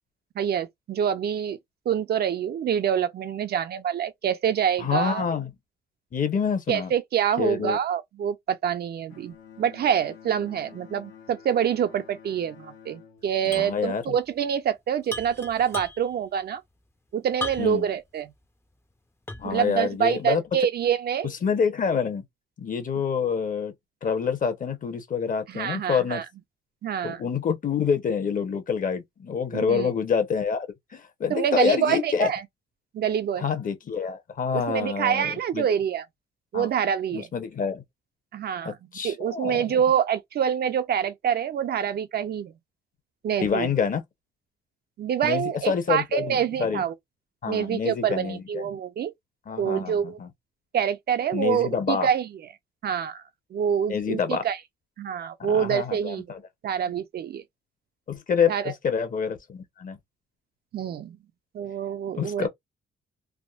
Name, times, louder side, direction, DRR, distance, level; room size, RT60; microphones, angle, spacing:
voice 1, 0.4-1.6 1.9-5.2 6.7-16.6 17.1-18.3 19.4-21.3 25.5-26.2 26.8-27.3 29.5-29.9 31.3-32.4 32.9-33.5 34.5-36.0 36.5-37.3 38.3-38.8 39.0-42.5 43.2-43.7 45.0-46.9 47.5-49.1 49.6-50.2 50.7-52.3 52.8-53.2 53.5-54.6 55.0-56.3 56.6-57.4 58.5-58.7 60.7-61.2 61.5-62.5, right 8 dB, 55° right, 0.5 m, -26 dB
voice 2, 4.8-5.5 6.1-6.9 7.4-7.8 13.5-14.0 17.6-17.9 19.4-20.4 21.4-22.2 22.6-23.7 24.0-26.2 27.0-32.3 33.4-35.7 36.5-36.7 37.1-37.8 38.6-39.8 43.4-44.0 45.2-46.8 47.4-48.7 49.5-50.3 51.3-52.1 53.9-54.4 55.4-56.4 58.1-60.0 62.1-62.5, left 6 dB, 45° left, 0.9 m, -27 dB
Bowed string instrument, 9.1-14.5, left 8 dB, 85° left, 1.1 m, -50 dB
sound 1, 13.5-13.8 14.0-14.1 15.0-16.2 17.4-17.9 18.4-18.5 19.3-19.6, left 2 dB, 10° left, 0.5 m, -35 dB
3.5 x 2.1 x 2.4 m
cardioid pair, 90°, 20 cm